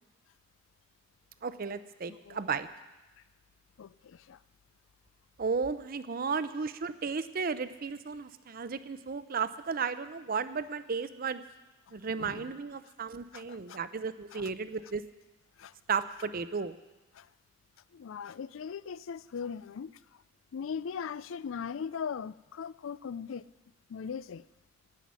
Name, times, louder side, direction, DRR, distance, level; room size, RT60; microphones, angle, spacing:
voice 1, 1.4-2.7 5.4-11.4 11.9-15.0 15.9-16.7, right 5 dB, 50° right, 13 dB, 0.6 m, -34 dB
voice 2, 3.8-4.4 12.2-12.5 13.3-13.8 14.3-14.5 15.6-15.7 17.1-17.3 17.9-20.0 20.5-23.4 23.9-24.4, left 6 dB, 90° left, 19 dB, 0.4 m, -39 dB
15.5 x 5.8 x 9.5 m, 1.1 s
head